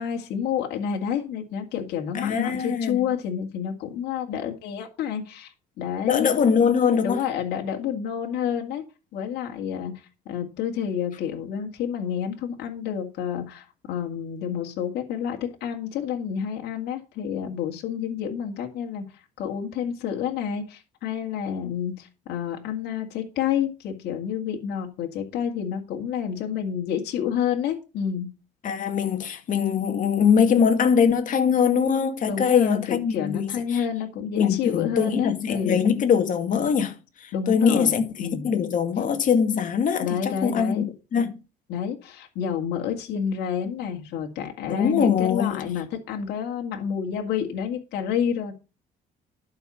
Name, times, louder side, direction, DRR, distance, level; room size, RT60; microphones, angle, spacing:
voice 1, 0.0-6.3 7.0-8.8 9.1-19.0 19.4-28.3 32.3-35.8 37.3-38.5 40.0-40.9 41.7-48.5, left 8 dB, 75° left, 2.0 m, -29 dB
voice 2, 2.1-3.0 6.1-7.2 28.6-33.8 34.4-36.9 37.2-40.8 41.1-41.4 44.7-45.7, left 7 dB, 50° left, 2.1 m, -22 dB
11.5 x 5.8 x 5.7 m
cardioid pair, 110°, 17 cm